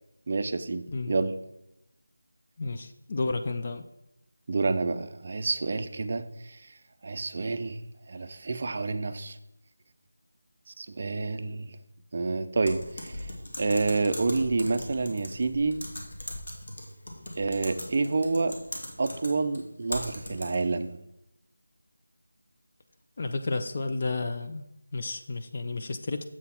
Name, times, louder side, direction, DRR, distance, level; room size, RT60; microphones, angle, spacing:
voice 1, 0.3-1.3 4.5-6.6 7.0-7.8 8.1-9.4 10.8-11.7 12.1-13.3 13.6-15.8 17.4-18.5 19.0-21.0, right 3 dB, 35° right, 10 dB, 0.4 m, -28 dB
voice 2, 2.6-3.8 23.2-24.6 24.9-26.2, left 3 dB, 30° left, 7 dB, 0.4 m, -31 dB
Typing, 12.7-20.8, left 1 dB, 75° left, 1.9 m, -40 dB
7.5 x 4.1 x 5.6 m, 0.85 s
figure-of-eight pair, 175°, 0 cm